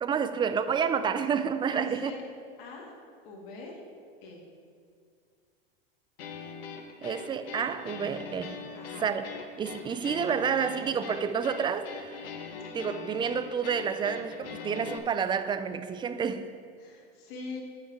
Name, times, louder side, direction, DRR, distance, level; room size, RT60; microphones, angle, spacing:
voice 1, 0.0-2.1 7.0-8.6 9.0-9.3 9.6-12.2 12.7-16.5, right 7 dB, 15° right, 0.4 m, -29 dB
voice 2, 1.7-2.3 2.6-2.9 3.2-3.8 4.2-4.4 8.7-9.1 16.8-17.6, left 3 dB, 60° left, 2.0 m, -42 dB
sound 1, 6.2-15.0, left 5 dB, 75° left, 1.1 m, -42 dB
6.4 x 5.8 x 7.2 m
hypercardioid pair, 95°, 29 cm